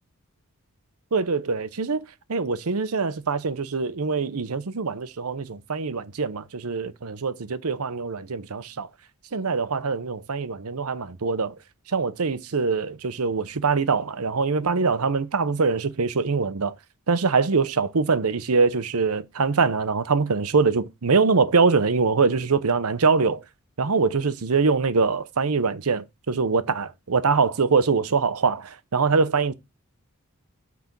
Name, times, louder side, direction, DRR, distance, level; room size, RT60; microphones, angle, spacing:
voice 1, 1.1-8.9 9.3-11.5 11.9-16.7 17.1-23.4 23.8-29.5, right 4 dB, 80° right, 0.8 m, -23 dB
6.0 x 5.1 x 6.0 m
head